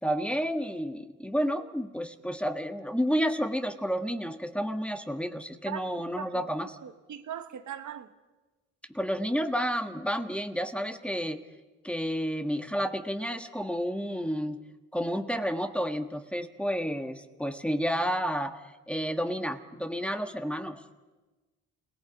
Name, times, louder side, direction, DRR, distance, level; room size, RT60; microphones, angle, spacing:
voice 1, 0.0-6.7 8.9-11.4 11.8-14.6 14.9-21.0, equal, 5° left, 1.6 m, -31 dB
voice 2, 6.1-6.5 6.8-8.1, right 9 dB, 65° right, 1.3 m, -39 dB
30.0 x 18.0 x 5.3 m
supercardioid pair, 55°, 32 cm